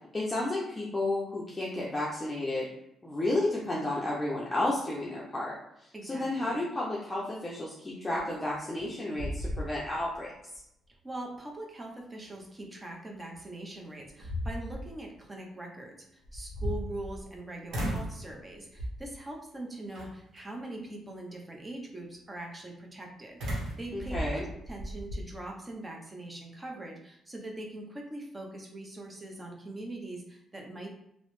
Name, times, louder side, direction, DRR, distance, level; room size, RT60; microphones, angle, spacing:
voice 1, 0.1-2.7 3.0-5.6 6.0-10.3 23.9-24.4, left 1 dB, 20° left, -5 dB, 0.6 m, -32 dB
voice 2, 5.9-6.5 11.0-30.9, right 2 dB, 20° right, 0 dB, 0.6 m, -42 dB
sound 1, 8.5-8.9 9.2-10.2 10.5-10.6 13.3-13.4 14.0-14.9 16.2-17.3 17.7-18.2 18.8-19.1 19.9-20.4 23.4-25.2, equal, 80° right, 0.8 m, -35 dB
3.0 x 2.0 x 3.0 m, 0.78 s
cardioid pair, 90°, 0 cm